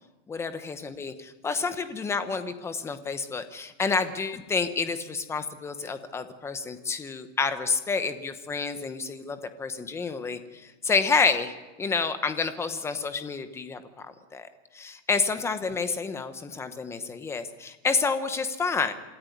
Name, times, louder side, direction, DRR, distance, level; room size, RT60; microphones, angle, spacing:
voice 1, 0.3-14.5 14.7-18.9, left 4 dB, 5° left, 10 dB, 0.9 m, -29 dB
26.5 x 15.0 x 9.4 m, 1.1 s
supercardioid pair, 165°, 38 cm